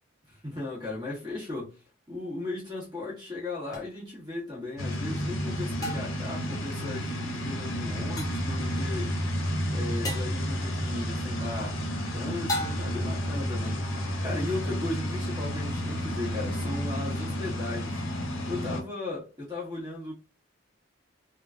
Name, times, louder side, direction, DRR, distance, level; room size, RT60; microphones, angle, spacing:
voice 1, 0.3-1.8 2.1-9.2 9.7-11.8 12.1-18.0 18.5-20.1, left 2 dB, 20° right, 1.3 m, -36 dB
sound 1, 3.7-3.8 5.8-6.3 8.2-8.5 10.0-10.4 12.5-13.1, left 1 dB, 15° left, 0.5 m, -34 dB
sound 2, 4.8-18.8, equal, 70° left, 0.6 m, -31 dB
3.1 x 2.2 x 2.4 m
head